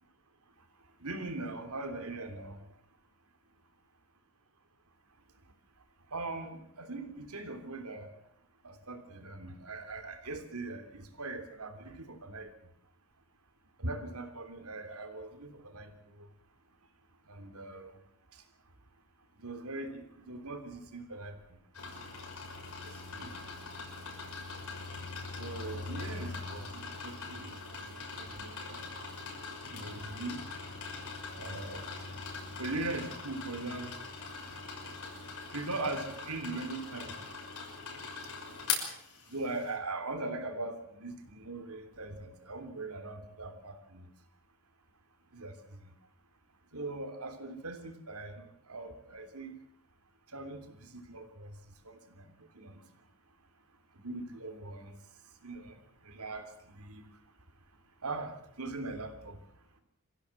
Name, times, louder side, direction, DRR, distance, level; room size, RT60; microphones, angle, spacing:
voice 1, 1.0-2.6 6.1-8.1 8.6-12.5 13.8-15.9 16.2-16.3 17.3-18.0 18.3-18.4 19.4-21.4 22.8-23.7 25.4-28.9 29.7-30.4 31.3-31.9 32.6-33.9 35.5-37.1 39.3-44.1 45.3-45.9 46.7-49.5 50.3-51.6 51.8-52.8 54.0-55.0 55.4-57.0 58.0-59.4, right 2 dB, 85° right, 7 dB, 3.2 m, -41 dB
sound 1, 21.7-39.7, left 4 dB, 75° left, 6.0 m, -42 dB
25.0 x 15.5 x 7.7 m, 0.73 s
head